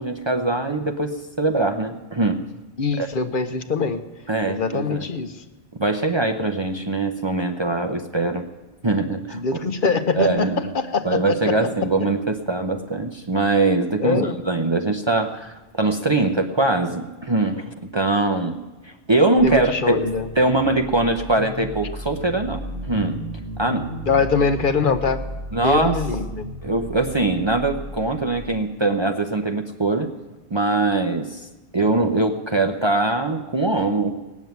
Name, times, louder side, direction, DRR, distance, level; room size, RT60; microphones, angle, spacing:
voice 1, 0.0-2.4 3.0-3.1 4.3-5.1 5.8-8.5 8.8-9.6 10.1-10.7 11.0-18.6 18.8-20.1 20.4-23.2 23.6-23.9 25.5-26.0 26.6-30.1 30.5-34.2, right 2 dB, 30° right, 4 dB, 0.6 m, -22 dB
voice 2, 2.8-4.0 4.5-5.3 9.3-11.7 14.0-14.4 19.4-20.3 24.1-25.3 25.6-26.5, left 4 dB, 55° left, 9 dB, 0.9 m, -23 dB
sound 1, 19.4-28.5, equal, 10° left, 6.4 m, -34 dB
18.0 x 7.3 x 9.3 m, 1.1 s
omnidirectional pair, 1.1 m